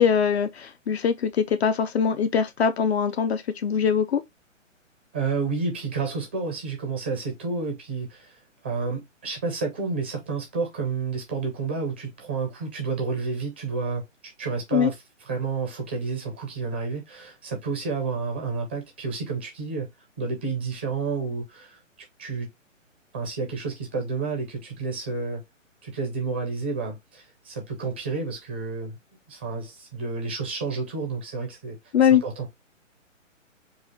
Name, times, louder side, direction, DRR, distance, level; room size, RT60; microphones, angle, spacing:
voice 1, 0.0-4.2 14.7-14.9 31.9-32.2, left 7 dB, 55° left, 0.6 m, -22 dB
voice 2, 5.1-14.9 15.2-19.9 20.2-21.8 22.2-22.5 23.1-25.4 25.8-29.0 29.3-31.8 32.2-32.3, right 4 dB, 10° right, 0.4 m, -30 dB
4.7 x 2.4 x 3.0 m
hypercardioid pair, 145°, 39 cm